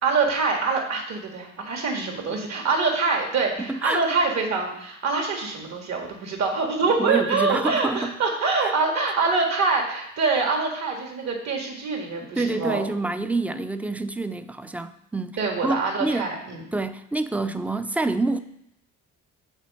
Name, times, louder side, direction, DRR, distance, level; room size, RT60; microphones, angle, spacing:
voice 1, 0.0-12.8 15.4-16.6, right 4 dB, 60° right, 1 dB, 1.9 m, -25 dB
voice 2, 3.6-4.0 7.0-8.1 8.6-8.7 12.2-16.3 16.7-18.4, right 2 dB, 5° right, 11 dB, 0.4 m, -27 dB
7.3 x 4.4 x 5.4 m, 0.77 s
cardioid pair, 90°, 30 cm